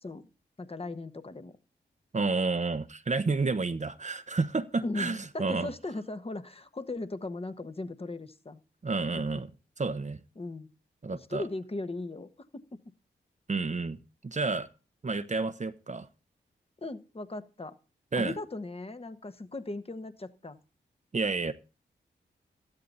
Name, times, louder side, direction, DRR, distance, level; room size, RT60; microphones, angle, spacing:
voice 1, 0.6-1.6 4.8-8.6 10.4-10.7 11.1-12.8 16.8-17.8 18.2-20.6, left 2 dB, 30° left, 1.3 m, -38 dB
voice 2, 2.1-5.7 8.8-9.5 9.8-10.2 11.0-11.5 13.5-14.0 14.2-14.7 15.0-16.1 18.1-18.3 21.1-21.5, right 3 dB, 35° right, 0.9 m, -30 dB
13.5 x 11.5 x 4.0 m
cardioid pair, 45°, 20 cm